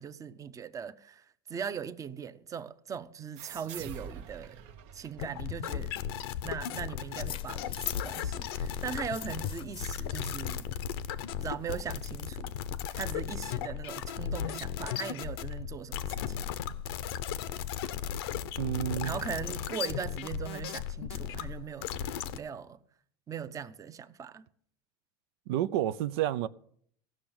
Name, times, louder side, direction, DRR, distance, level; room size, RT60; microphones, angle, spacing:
voice 1, 0.0-4.6 4.9-5.9 6.4-10.6 11.4-12.5 12.9-16.4 19.0-22.8 23.3-24.5, right 7 dB, 25° right, 0.7 m, -39 dB
sound 1, 3.4-6.6, right 7 dB, 65° right, 1.0 m, -46 dB
sound 2, 5.2-22.4, left 9 dB, 90° left, 0.8 m, -36 dB
sound 3, 6.8-12.2, left 12 dB, 50° left, 0.7 m, -44 dB
voice 2, 18.6-19.1 25.5-26.5, right 12 dB, 80° right, 0.5 m, -30 dB
15.5 x 6.1 x 8.9 m
supercardioid pair, 115°, 12 cm